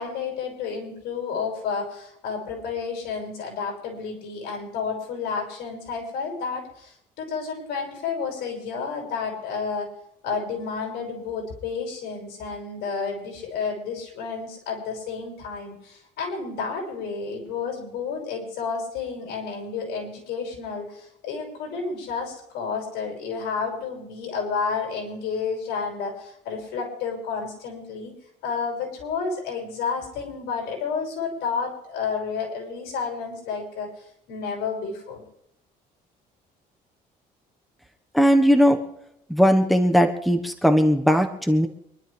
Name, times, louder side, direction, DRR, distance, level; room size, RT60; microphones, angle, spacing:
voice 1, 0.0-9.9 10.2-28.1 28.4-35.2, left 5 dB, 80° left, 1 dB, 6.4 m, -31 dB
voice 2, 38.1-38.8 39.3-41.7, equal, ahead, 5 dB, 1.3 m, -18 dB
26.0 x 12.0 x 3.4 m, 0.77 s
cardioid pair, 110°, 17 cm